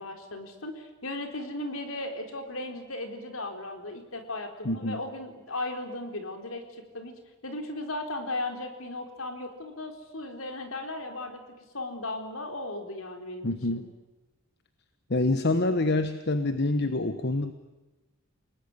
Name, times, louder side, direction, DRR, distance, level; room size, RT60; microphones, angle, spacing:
voice 1, 0.0-7.1 7.4-11.4 11.7-13.8, left 2 dB, 70° left, 6 dB, 4.0 m, -36 dB
voice 2, 4.6-5.0 13.4-13.9 15.1-17.5, left 2 dB, 55° left, 10 dB, 1.2 m, -26 dB
29.0 x 19.5 x 9.8 m, 1.1 s
head